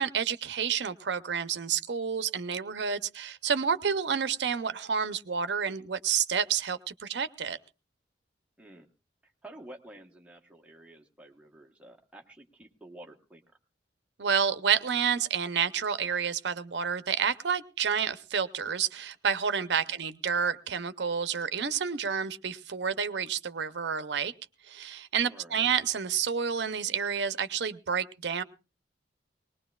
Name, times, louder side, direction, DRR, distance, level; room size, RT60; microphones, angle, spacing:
voice 1, 0.0-7.6 14.2-24.3 24.7-28.4, right 7 dB, 70° right, 13 dB, 0.6 m, -29 dB
voice 2, 9.2-13.4 19.9-20.0 25.3-25.7, right 1 dB, 5° right, 0 dB, 1.0 m, -50 dB
20.5 x 19.5 x 2.3 m, 0.31 s
head